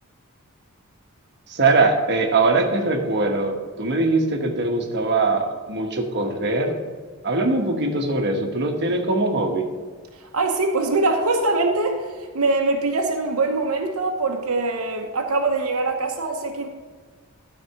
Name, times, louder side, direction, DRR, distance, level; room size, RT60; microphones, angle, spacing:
voice 1, 1.5-6.8 7.2-9.6, right 3 dB, 55° right, 3 dB, 1.2 m, -21 dB
voice 2, 10.2-16.7, right 3 dB, 85° right, 2 dB, 1.0 m, -23 dB
12.5 x 4.2 x 5.7 m, 1.5 s
head